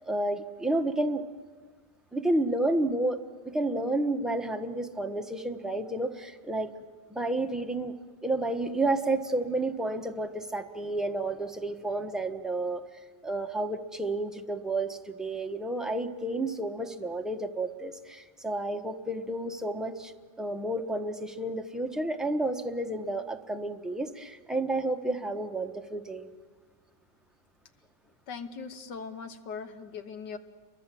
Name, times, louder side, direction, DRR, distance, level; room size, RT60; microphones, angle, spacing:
voice 1, 0.0-1.2 2.1-3.2 3.4-6.7 7.1-7.9 8.2-12.8 13.2-20.1 20.4-26.3, right 2 dB, ahead, 4 dB, 0.4 m, -31 dB
voice 2, 28.3-30.4, left 5 dB, 65° left, 9 dB, 1.7 m, -40 dB
29.5 x 23.0 x 7.6 m, 1.5 s
omnidirectional pair, 2.1 m